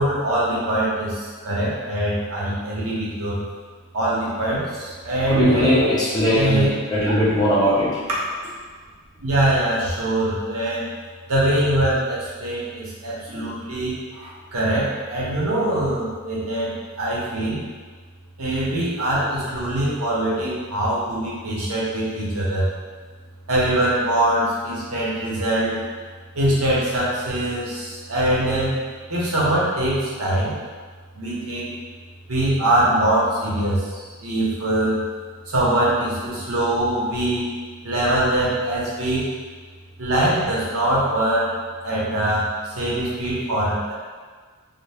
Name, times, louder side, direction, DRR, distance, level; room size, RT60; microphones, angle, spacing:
voice 1, 0.0-3.4 3.9-5.8 6.3-6.7 9.2-10.9 11.3-16.7 17.0-17.6 18.4-22.7 23.5-25.8 26.3-28.8 29.1-30.6 31.2-31.7 32.3-35.0 35.5-37.5 37.8-39.3 40.0-41.5 41.8-43.9, right 1 dB, 70° right, -6 dB, 0.8 m, -23 dB
voice 2, 5.3-8.0, equal, 15° left, -8 dB, 0.6 m, -19 dB
2.6 x 2.0 x 3.3 m, 1.5 s
head